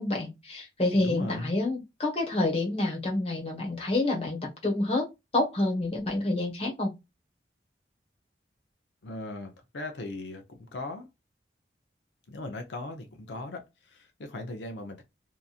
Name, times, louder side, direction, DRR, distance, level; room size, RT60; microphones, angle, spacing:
voice 1, 0.0-5.1 5.3-6.9, left 2 dB, 35° left, 1.0 m, -28 dB
voice 2, 0.9-1.5 9.0-11.1 12.3-15.0, left 2 dB, 85° left, 0.6 m, -38 dB
2.8 x 2.5 x 2.4 m
head